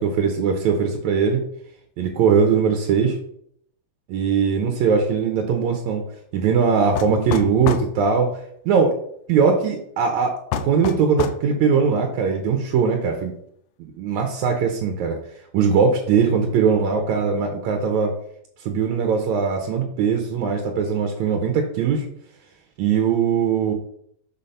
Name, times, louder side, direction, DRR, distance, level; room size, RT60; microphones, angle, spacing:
voice 1, 0.0-1.4 2.0-3.2 4.1-6.0 6.3-8.4 8.6-9.0 9.3-10.3 10.6-13.3 13.8-15.2 15.5-18.1 18.6-22.1 22.8-23.7, right 6 dB, 80° right, 4 dB, 1.7 m, -20 dB
sound 1, 7.0-7.9 10.5-11.4, left 8 dB, 90° left, 1.9 m, -26 dB
7.2 x 4.1 x 5.4 m, 0.68 s
omnidirectional pair, 4.3 m